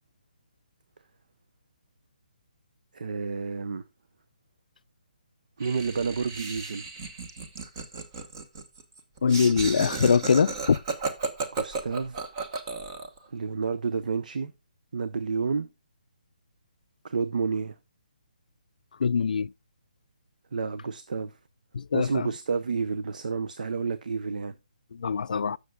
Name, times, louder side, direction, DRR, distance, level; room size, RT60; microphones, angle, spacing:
voice 1, 2.9-3.8 5.6-6.8 11.5-12.2 13.3-14.5 14.9-15.7 17.0-17.8 20.5-21.3 21.9-24.5, right 5 dB, 70° right, 0.7 m, -30 dB
Laughter, 5.6-13.2, right 4 dB, 25° right, 1.1 m, -34 dB
voice 2, 9.2-10.8 19.0-19.5 21.7-22.3 24.9-25.6, left 6 dB, 70° left, 0.3 m, -23 dB
13.5 x 6.6 x 2.3 m
hypercardioid pair, 170°, 5 cm